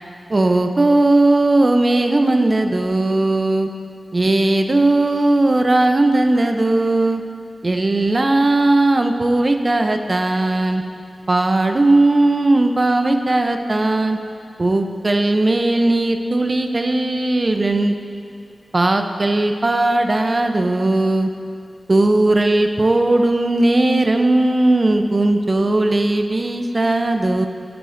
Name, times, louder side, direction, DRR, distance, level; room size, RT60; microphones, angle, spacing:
voice 1, 0.3-3.7 4.1-7.2 7.6-10.8 11.3-14.2 14.6-18.0 18.7-21.3 21.9-27.5, right 2 dB, 40° right, 6 dB, 0.5 m, -17 dB
9.3 x 9.0 x 2.5 m, 2.4 s
wide cardioid pair, 70°, 0 cm